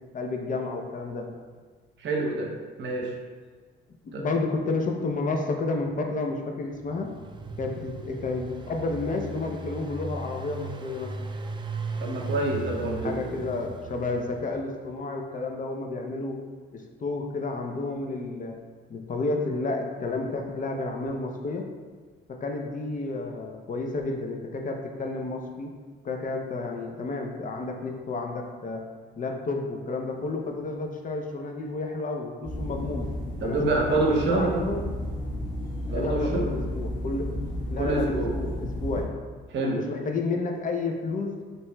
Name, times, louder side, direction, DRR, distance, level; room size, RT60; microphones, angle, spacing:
voice 1, 0.1-1.3 4.0-7.1 7.6-11.2 12.8-16.4 16.7-18.6 18.9-21.7 22.3-25.7 26.0-28.9 29.2-33.1 33.4-34.8 35.9-37.4 37.7-39.2 39.6-41.4, left 3 dB, 40° left, 3 dB, 0.6 m, -31 dB
voice 2, 2.0-2.5 2.8-3.1 4.1-4.2 12.0-13.2 32.7-32.8 33.4-34.6 35.9-36.5 37.8-38.3 39.5-39.8, right 2 dB, 65° right, 0 dB, 0.8 m, -27 dB
Engine, 6.7-14.7, right 3 dB, 25° right, 0.3 m, -37 dB
sound 1, 32.4-39.0, left 1 dB, 20° left, 1.1 m, -33 dB
5.7 x 2.9 x 2.2 m, 1.5 s
cardioid pair, 90°, 20 cm